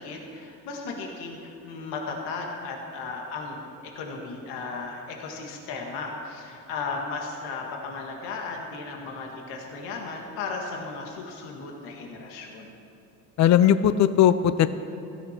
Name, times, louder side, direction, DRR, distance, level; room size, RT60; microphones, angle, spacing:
voice 1, 0.0-3.7 4.0-12.7, left 4 dB, 90° left, 0 dB, 1.9 m, -35 dB
voice 2, 13.4-14.7, left 10 dB, 45° left, 13 dB, 0.6 m, -18 dB
16.5 x 13.5 x 4.5 m, 2.7 s
cardioid pair, 90°, 38 cm